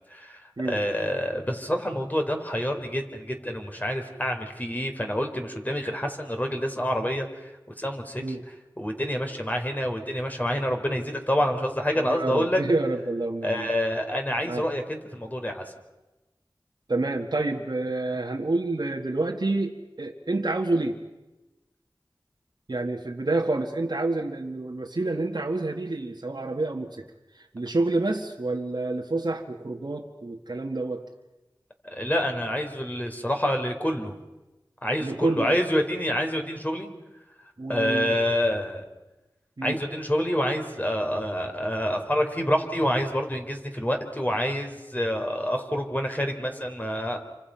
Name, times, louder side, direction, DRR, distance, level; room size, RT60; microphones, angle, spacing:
voice 1, 0.1-7.5 7.8-8.2 8.8-12.6 13.4-15.7 31.8-34.1 34.8-36.9 37.7-38.8 39.6-47.2, equal, 20° left, 4 dB, 4.0 m, -27 dB
voice 2, 12.0-13.7 14.5-14.7 16.9-21.0 22.7-27.1 27.3-31.1 35.0-35.6 37.6-38.2 39.6-39.8, right 2 dB, 65° right, 0 dB, 1.8 m, -28 dB
29.5 x 25.5 x 5.8 m, 1.1 s
wide cardioid pair, 45°, 8 cm